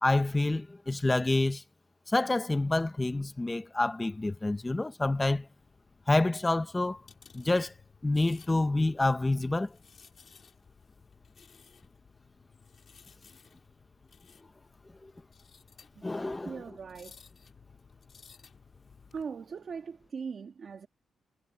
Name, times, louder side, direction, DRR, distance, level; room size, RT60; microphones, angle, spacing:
voice 1, 0.0-1.6 2.1-5.5 6.1-7.0 7.3-7.7 8.0-9.8 15.0-15.1 16.0-16.6, left 2 dB, 15° left, 1.2 m, -28 dB
sound 1, 5.6-19.2, left 6 dB, 40° left, 5.4 m, -58 dB
voice 2, 16.4-17.3 19.1-20.9, right 6 dB, 40° right, 1.6 m, -40 dB
wide cardioid pair, 170°, 0 cm